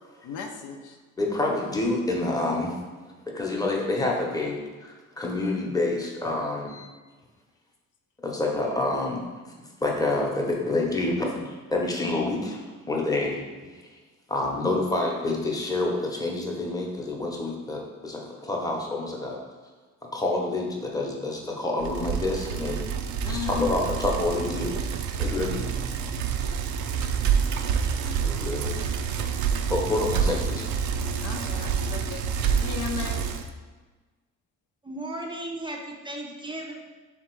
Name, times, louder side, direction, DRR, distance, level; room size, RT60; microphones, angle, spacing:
voice 1, 0.2-1.0 23.2-23.7 31.2-33.3, left 7 dB, 80° left, 3 dB, 0.6 m, -36 dB
voice 2, 1.2-2.8 3.3-6.9 8.2-9.5 9.8-13.4 13.7-14.0 14.3-19.4 20.1-24.8 25.2-25.7 28.2-28.8 29.7-30.6, left 2 dB, 10° left, -1 dB, 0.8 m, -28 dB
Bicycle, 21.8-33.5, right 6 dB, 70° right, 0.4 m, -28 dB
voice 3, 34.8-36.7, right 1 dB, 15° right, 1 dB, 0.5 m, -35 dB
3.4 x 2.9 x 4.5 m, 1.3 s
cardioid pair, 90°, 30 cm